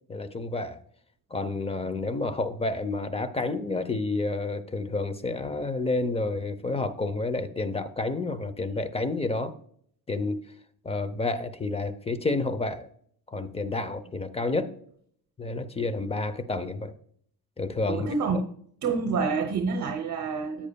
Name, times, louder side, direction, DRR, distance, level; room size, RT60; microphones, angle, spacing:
voice 1, 0.1-0.8 1.3-9.5 10.1-10.4 10.8-12.9 13.3-14.7 15.4-16.9 17.6-18.1, left 3 dB, 15° left, 0.7 m, -29 dB
voice 2, 17.9-18.5 18.8-20.7, right 4 dB, 50° right, 0.8 m, -27 dB
10.5 x 8.7 x 2.3 m
cardioid pair, 105°, 36 cm